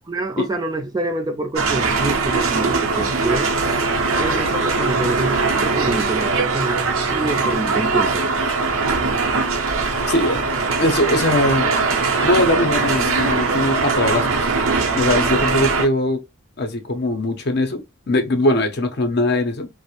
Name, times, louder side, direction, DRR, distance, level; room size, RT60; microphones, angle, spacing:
voice 1, 0.1-3.6 4.1-8.5, right 2 dB, 20° right, 0.3 m, -27 dB
sound 1, 1.6-15.9, right 4 dB, 85° right, 0.6 m, -21 dB
voice 2, 10.1-10.4 10.8-11.7 12.2-14.5 14.9-16.2 16.6-19.7, left 1 dB, 55° left, 0.5 m, -21 dB
2.4 x 2.0 x 2.9 m
head